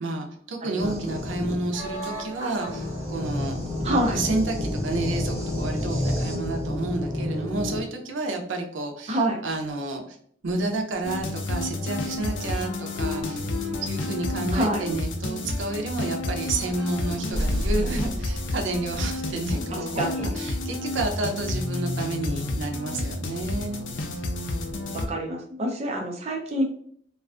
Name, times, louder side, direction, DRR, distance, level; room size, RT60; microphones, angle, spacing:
voice 1, 0.0-10.2 10.4-24.2, right 2 dB, 85° right, 3 dB, 0.5 m, -30 dB
voice 2, 0.6-1.2 3.8-4.2 9.1-9.4 14.5-14.8 20.0-20.3 24.9-26.6, right 1 dB, 35° right, 1 dB, 0.5 m, -27 dB
sound 1, 0.8-7.8, left 1 dB, 20° right, 0.9 m, -30 dB
sound 2, 11.0-25.1, left 2 dB, 80° left, 0.4 m, -30 dB
sound 3, 17.3-19.2, equal, 65° right, 0.9 m, -29 dB
2.4 x 2.3 x 2.4 m, 0.62 s
head